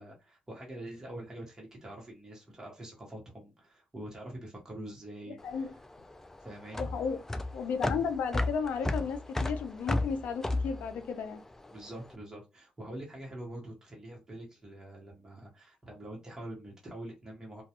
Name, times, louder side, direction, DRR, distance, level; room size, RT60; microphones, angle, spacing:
voice 1, 0.0-5.7 6.4-6.9 11.7-17.6, right 1 dB, 20° right, 1.0 m, -45 dB
voice 2, 5.3-5.7 6.8-7.2 7.5-11.4, left 6 dB, 80° left, 0.4 m, -34 dB
sound 1, 5.4-11.9, left 2 dB, 15° left, 0.3 m, -33 dB
2.3 x 2.2 x 2.8 m
cardioid pair, 80°, 3 cm